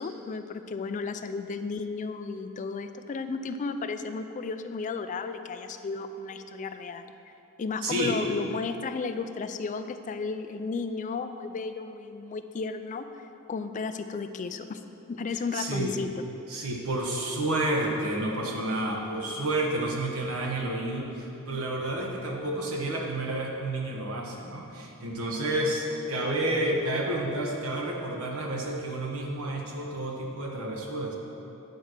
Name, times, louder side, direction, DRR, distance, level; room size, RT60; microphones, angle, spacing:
voice 1, 0.0-7.1 7.6-13.1 13.5-14.8 15.1-16.1, left 4 dB, 35° left, 9 dB, 0.3 m, -33 dB
voice 2, 7.8-8.2 15.5-16.0 16.5-31.1, right 1 dB, 75° right, -1 dB, 1.3 m, -30 dB
9.2 x 4.6 x 6.4 m, 2.9 s
head